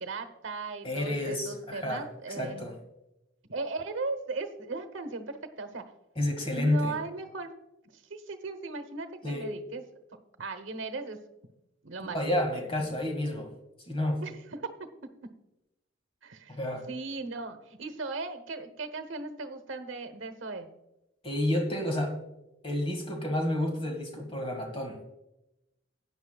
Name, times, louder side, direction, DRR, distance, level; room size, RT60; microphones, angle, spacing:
voice 1, 0.0-2.7 3.5-5.8 6.5-7.5 7.9-9.8 10.4-11.2 11.8-12.2 14.2-15.1 16.2-16.6 16.9-20.7, right 3 dB, 70° right, 9 dB, 1.0 m, -37 dB
voice 2, 0.8-2.7 6.2-6.9 9.2-9.5 12.1-13.5 13.9-14.2 16.5-16.9 21.2-22.2 22.6-25.1, left 1 dB, 25° left, 3 dB, 2.0 m, -30 dB
16.5 x 9.7 x 2.4 m, 0.92 s
head